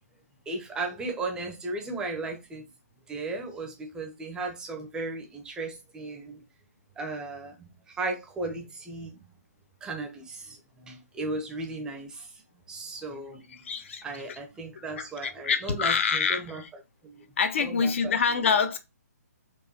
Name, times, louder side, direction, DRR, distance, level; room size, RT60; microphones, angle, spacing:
voice 1, 0.5-2.6 3.1-6.4 7.0-9.3 9.8-13.6 14.0-16.6 17.0-17.3 17.6-18.5, right 3 dB, 10° right, 0.7 m, -36 dB
voice 2, 13.6-14.4 14.7-16.7 17.4-18.8, left 6 dB, 45° left, 0.6 m, -27 dB
4.5 x 2.5 x 2.8 m
figure-of-eight pair, 135°, 9 cm